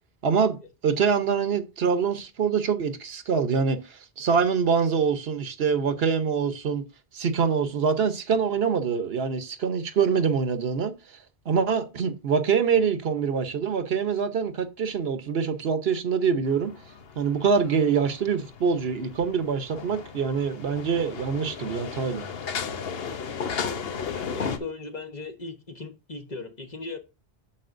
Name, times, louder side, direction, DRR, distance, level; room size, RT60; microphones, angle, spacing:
voice 1, 0.2-0.6 0.8-6.9 7.1-10.9 11.5-16.7 17.2-22.2, right 6 dB, 75° right, 1.1 m, -25 dB
sound 1, 16.4-24.6, left 6 dB, 70° left, 1.0 m, -35 dB
voice 2, 24.1-27.0, left 3 dB, 45° left, 1.2 m, -37 dB
8.6 x 7.0 x 2.6 m
omnidirectional pair, 1.0 m